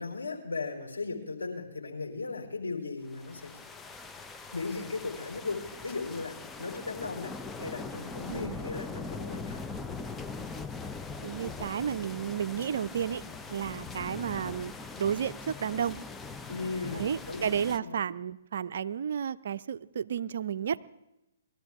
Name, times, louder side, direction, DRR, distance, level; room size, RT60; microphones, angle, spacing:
voice 1, 0.0-3.6 4.5-9.6 16.5-18.0, left 4 dB, 80° left, 1 dB, 3.6 m, -37 dB
sound 1, 3.1-17.8, left 4 dB, 10° left, 0.6 m, -41 dB
voice 2, 8.3-8.6 11.2-13.2 13.5-16.0 16.9-20.8, right 8 dB, 60° right, 15 dB, 0.5 m, -32 dB
21.5 x 13.0 x 3.6 m, 0.91 s
figure-of-eight pair, 130°, 0 cm